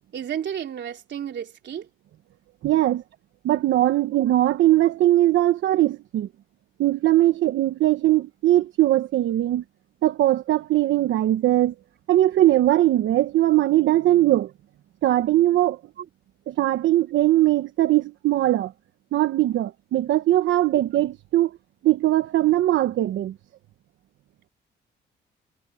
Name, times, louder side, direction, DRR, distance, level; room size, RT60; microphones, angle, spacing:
voice 1, 0.1-1.9 16.0-16.1, right 9 dB, 60° right, 3.4 m, -32 dB
voice 2, 2.6-3.0 3.4-6.3 6.8-9.6 10.0-11.7 12.1-14.5 15.0-15.8 16.5-18.7 19.1-21.6 21.8-23.3, right 14 dB, 75° right, 1.1 m, -20 dB
cardioid pair, 90°, 20 cm